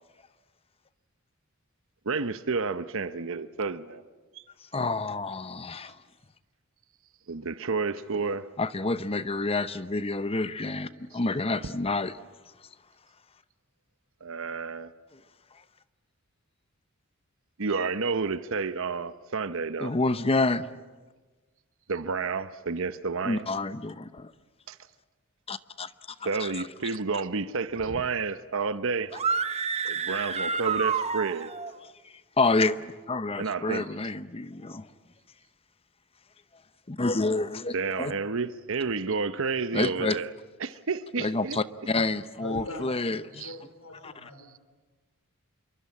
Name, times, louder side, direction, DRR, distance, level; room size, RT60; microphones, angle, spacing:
voice 1, 2.0-4.0 4.3-4.4 7.3-8.5 11.1-11.2 14.2-14.9 17.6-19.9 21.9-23.5 26.2-29.1 29.8-31.5 33.4-33.8 37.7-41.9 43.4-43.6, right 4 dB, 65° right, 0.9 m, -30 dB
voice 2, 4.7-5.9 8.6-12.1 19.8-20.7 23.3-24.3 25.5-25.9 26.2-26.5 32.4-32.8 33.1-34.9 36.9-38.1 39.7-40.2 41.2-43.4 44.0-44.1, left 3 dB, 25° left, 0.8 m, -28 dB
sound 1, 29.1-31.7, right 5 dB, 30° right, 1.1 m, -29 dB
voice 3, 42.4-44.6, left 1 dB, 85° left, 4.7 m, -42 dB
27.0 x 23.5 x 8.6 m
head